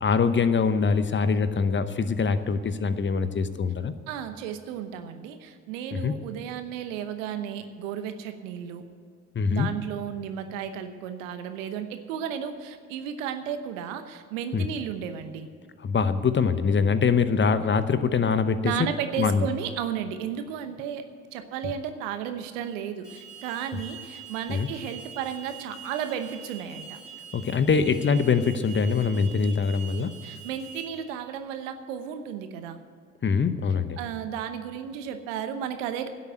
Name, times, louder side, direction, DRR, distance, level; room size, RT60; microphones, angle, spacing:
voice 1, 0.0-3.9 5.9-6.1 9.3-9.7 14.5-14.7 15.8-18.9 19.2-19.5 24.5-24.7 27.3-30.1 33.2-34.0, left 5 dB, 30° left, 12 dB, 0.9 m, -23 dB
voice 2, 4.1-8.8 9.5-15.5 18.6-21.0 21.3-27.0 30.2-32.8 34.0-36.1, right 8 dB, 75° right, 9 dB, 1.1 m, -33 dB
Alarm, 23.0-30.8, right 6 dB, 5° left, 3.5 m, -45 dB
11.0 x 8.3 x 9.1 m, 2.2 s
hypercardioid pair, 55°, 38 cm